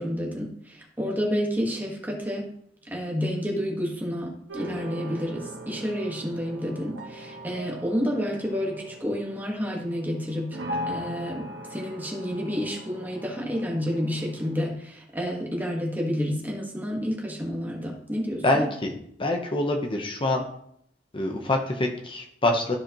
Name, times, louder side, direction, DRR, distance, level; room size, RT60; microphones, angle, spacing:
voice 1, 0.0-2.5 2.8-10.6 10.9-18.6, equal, 10° right, -1 dB, 1.4 m, -30 dB
sound 1, 4.5-14.7, equal, 90° right, 1.3 m, -39 dB
voice 2, 18.4-18.9 19.2-20.4 21.1-22.8, left 2 dB, 30° left, 3 dB, 0.9 m, -25 dB
13.0 x 4.9 x 3.0 m, 0.69 s
head